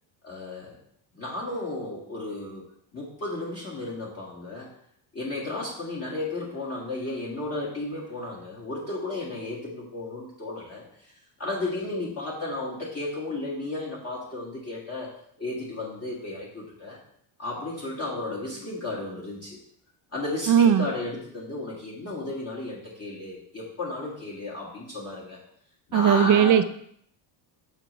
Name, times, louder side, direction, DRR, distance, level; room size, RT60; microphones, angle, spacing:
voice 1, 0.2-0.8 1.1-2.6 2.9-4.7 5.1-11.1 11.4-17.0 17.4-19.6 20.1-25.4 25.9-26.5, left 2 dB, 30° left, -5 dB, 1.7 m, -34 dB
voice 2, 20.5-20.9 25.9-26.7, right 8 dB, 40° right, 10 dB, 0.5 m, -18 dB
6.9 x 6.6 x 3.1 m, 0.67 s
cardioid pair, 135°, 50 cm